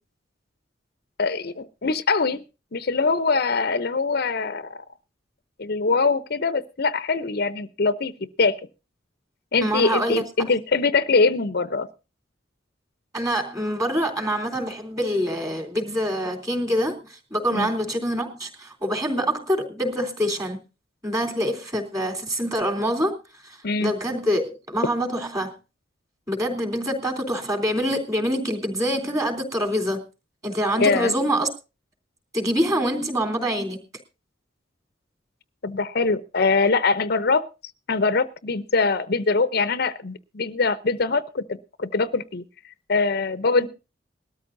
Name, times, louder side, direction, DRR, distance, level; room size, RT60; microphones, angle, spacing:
voice 1, 1.2-2.4 2.7-4.8 5.6-8.1 8.4-8.6 9.5-11.9 17.5-17.7 23.6-23.9 30.8-31.1 35.6-37.4 37.9-42.4 42.9-43.7, left 4 dB, 55° left, 14 dB, 0.7 m, -23 dB
voice 2, 9.6-10.2 13.1-20.6 21.0-23.1 23.4-25.5 26.3-30.0 30.4-31.5 32.3-33.8 43.6-43.7, equal, 20° right, 4 dB, 3.4 m, -25 dB
21.0 x 13.5 x 2.6 m, 0.30 s
head